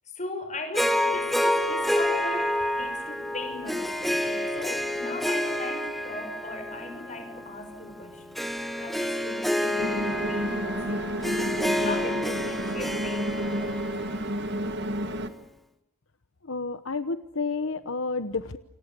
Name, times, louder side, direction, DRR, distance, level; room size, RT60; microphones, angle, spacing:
voice 1, 0.0-8.5 8.8-13.8, left 2 dB, 35° left, 7 dB, 5.7 m, -39 dB
Harp, 0.7-15.1, left 1 dB, ahead, 1.7 m, -29 dB
sound 1, 9.8-15.3, right 1 dB, 55° right, 1.8 m, -31 dB
voice 2, 16.4-18.6, left 4 dB, 65° left, 10 dB, 1.0 m, -30 dB
29.0 x 27.0 x 6.9 m, 0.81 s
head